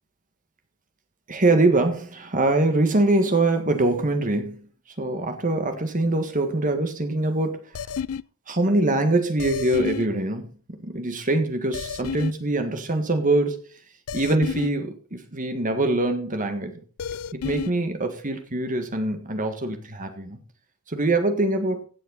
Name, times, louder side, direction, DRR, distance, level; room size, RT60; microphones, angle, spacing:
voice 1, 1.3-4.6 5.0-7.6 8.5-10.5 10.8-13.7 14.1-16.8 17.3-20.4 20.9-21.8, right 2 dB, 35° right, 1.8 m, -23 dB
sound 1, 7.7-8.2 9.4-10.1 11.7-12.3 14.1-14.7 17.0-17.7, left 7 dB, 75° left, 0.4 m, -30 dB
16.0 x 7.7 x 3.9 m
head